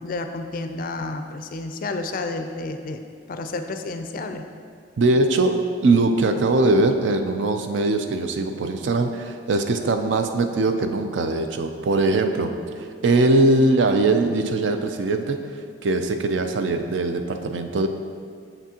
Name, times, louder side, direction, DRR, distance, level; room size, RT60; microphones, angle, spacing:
voice 1, 0.0-3.0 3.3-4.4 12.3-12.5, left 3 dB, 45° left, 7 dB, 0.3 m, -30 dB
voice 2, 5.0-5.5 5.8-12.5 13.0-17.9, right 2 dB, 70° right, 7 dB, 0.4 m, -21 dB
6.8 x 5.9 x 2.9 m, 2.2 s
head